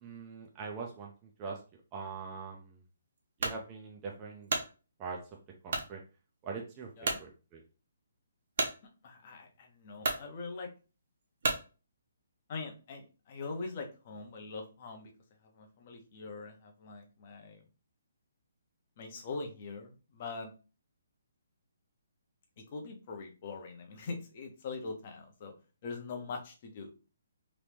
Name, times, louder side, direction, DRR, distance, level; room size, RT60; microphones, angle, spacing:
voice 1, 0.0-1.6 1.9-2.8 3.4-4.5 5.0-5.2 5.6-6.0 6.4-7.6, right 4 dB, 15° right, 0 dB, 0.4 m, -42 dB
sound 1, 3.4-3.6 4.2-4.7 5.7-5.9 6.5-6.6 7.0-7.3 8.6-8.8 9.6-9.7 10.0-10.3 11.4-11.7, right 3 dB, 50° right, 0.7 m, -32 dB
voice 2, 9.0-10.7 12.5-15.1 15.4-17.6 19.0-20.5 22.7-25.5 25.8-26.9, left 4 dB, 30° left, 3 dB, 0.6 m, -42 dB
3.0 x 2.6 x 3.4 m, 0.33 s
hypercardioid pair, 175°, 0 cm